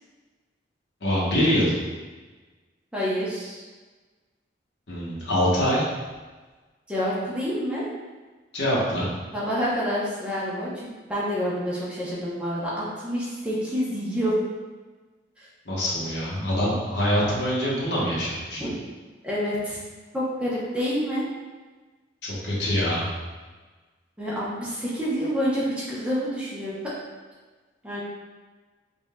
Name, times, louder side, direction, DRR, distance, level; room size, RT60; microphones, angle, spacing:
voice 1, 1.0-1.7 4.9-5.8 8.5-9.1 15.6-18.6 22.2-23.1, equal, 75° left, -7 dB, 1.1 m, -24 dB
voice 2, 2.9-3.6 6.9-7.8 9.3-14.4 15.4-15.5 18.6-18.7 19.2-19.8 20.1-21.2 24.2-26.8 27.8-28.0, equal, 5° right, -8 dB, 0.8 m, -28 dB
5.1 x 2.6 x 2.3 m, 1.3 s
head